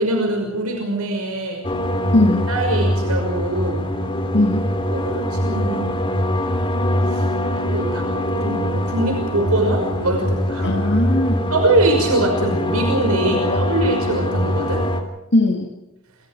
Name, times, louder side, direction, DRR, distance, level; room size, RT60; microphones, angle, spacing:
voice 1, 0.0-1.6 2.5-3.9 4.9-6.0 7.1-7.3 7.6-10.8 11.5-14.8, right 2 dB, 80° right, 2 dB, 5.9 m, -23 dB
sound 1, 1.6-15.0, equal, 20° left, 3.1 m, -22 dB
voice 2, 2.1-2.5 4.3-4.6 10.6-11.4 13.3-13.6 15.3-15.7, left 1 dB, 50° left, 3 dB, 2.5 m, -18 dB
29.0 x 24.5 x 4.9 m, 0.94 s
head